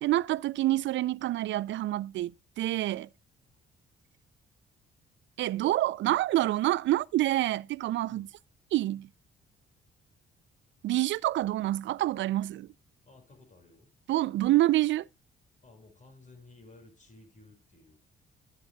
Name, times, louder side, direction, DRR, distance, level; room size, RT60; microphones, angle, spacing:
voice 1, 0.0-2.3 2.6-3.1 5.4-8.3 8.7-9.1 10.8-12.7 14.1-15.1, right 15 dB, 70° right, 0.4 m, -27 dB
voice 2, 13.0-13.9 15.6-18.1, left 2 dB, 40° left, 6.2 m, -55 dB
12.5 x 9.7 x 2.3 m
cardioid pair, 90°, 20 cm